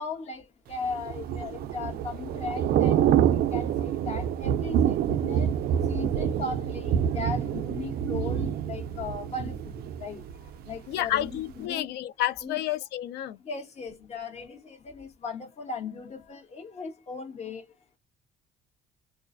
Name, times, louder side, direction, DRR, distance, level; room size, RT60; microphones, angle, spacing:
voice 1, 0.0-11.9 12.4-12.6 13.4-18.0, left 4 dB, 40° left, 1.2 m, -37 dB
Thunder / Rain, 0.8-10.8 11.1-11.4, right 10 dB, 65° right, 0.4 m, -27 dB
voice 2, 10.9-13.4, left 12 dB, 75° left, 0.5 m, -30 dB
2.4 x 2.1 x 2.4 m
cardioid pair, 110°, 17 cm